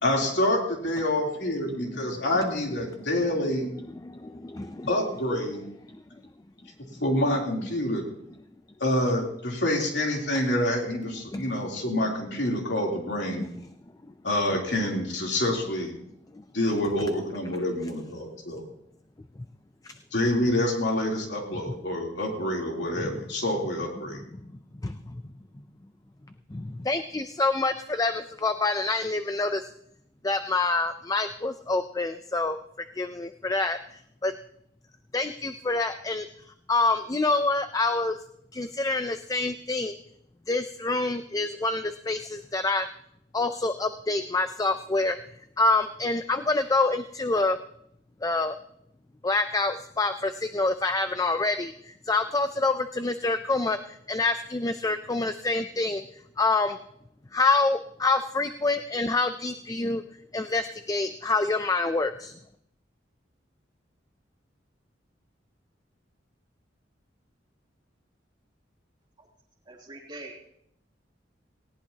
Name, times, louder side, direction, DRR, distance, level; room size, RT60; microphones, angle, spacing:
voice 1, 0.0-3.7 4.9-5.6 7.0-8.0 8.8-13.4 14.2-15.9 16.5-18.6 20.1-24.2, left 1 dB, 65° left, -1 dB, 3.3 m, -27 dB
voice 2, 4.0-4.9 11.3-11.5 13.4-13.5 16.3-16.4 19.8-20.0 23.0-23.2 24.1-24.5 24.8-25.2 26.5-29.6 30.2-34.3 35.1-38.2 38.5-39.9 40.5-42.9 43.3-45.2 45.6-47.6 48.2-48.5 49.2-56.0 56.4-56.8 57.3-60.0 60.3-62.4, left 3 dB, 20° left, 9 dB, 0.4 m, -27 dB
voice 3, 69.7-70.5, right 2 dB, 25° right, -3 dB, 3.1 m, -43 dB
18.5 x 17.5 x 2.9 m, 0.74 s
head